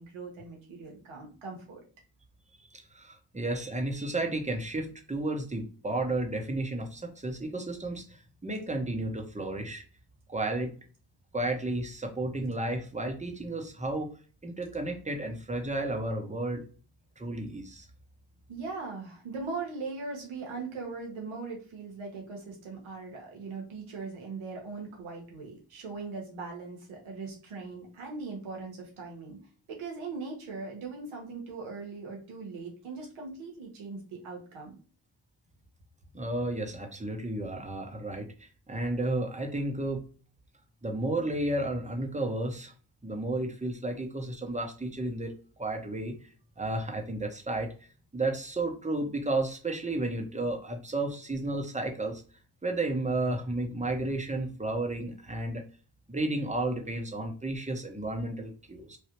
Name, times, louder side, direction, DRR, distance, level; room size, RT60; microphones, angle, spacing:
voice 1, 0.0-1.8 18.5-29.4 29.7-34.8, right 4 dB, 90° right, 0 dB, 1.1 m, -40 dB
voice 2, 2.9-8.2 8.4-9.8 10.3-10.7 11.3-14.1 14.4-16.6 17.2-17.9 36.1-40.0 40.8-42.7 43.0-45.3 45.6-46.1 46.6-47.7 48.1-52.2 52.6-55.6 56.1-59.0, right 2 dB, 15° right, 3 dB, 0.9 m, -32 dB
3.2 x 2.3 x 2.8 m, 0.39 s
supercardioid pair, 45°, 47 cm